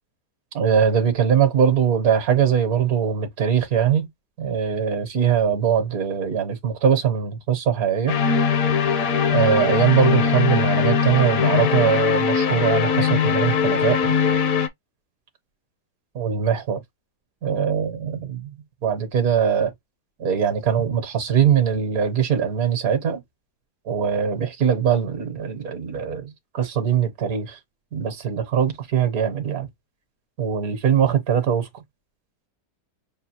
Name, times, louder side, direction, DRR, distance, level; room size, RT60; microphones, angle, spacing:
voice 1, 0.5-4.1 4.4-8.2 9.3-14.0 16.2-16.8 17.4-18.5 18.8-19.7 20.2-23.2 23.9-27.6 27.9-29.7 30.4-31.7, right 8 dB, 60° right, 1.4 m, -21 dB
sound 1, 8.1-14.7, left 6 dB, 65° left, 1.1 m, -20 dB
6.2 x 2.4 x 2.8 m
omnidirectional pair, 1.7 m